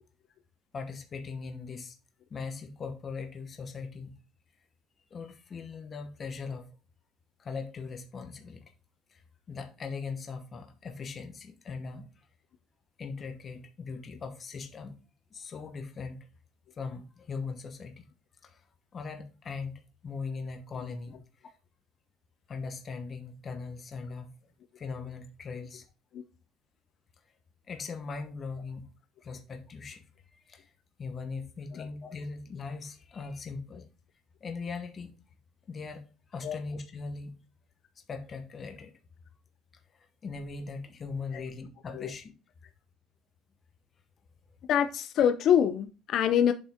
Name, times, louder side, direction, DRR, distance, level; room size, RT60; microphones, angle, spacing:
voice 1, 0.7-1.9 2.3-4.1 5.1-6.6 7.4-8.6 9.1-9.2 9.5-12.1 13.0-14.9 15.3-16.2 16.8-18.1 18.4-18.6 18.9-19.7 20.0-21.2 21.4-21.5 22.5-24.3 24.8-25.9 27.7-28.8 29.2-30.0 30.3-30.6 31.0-33.8 34.4-35.1 35.7-36.0 36.3-37.3 38.1-38.9 39.9-42.3, left 4 dB, 25° left, 1.0 m, -39 dB
voice 2, 44.7-46.5, left 9 dB, 45° left, 0.4 m, -25 dB
7.6 x 5.3 x 3.6 m
cardioid pair, 170°, 0 cm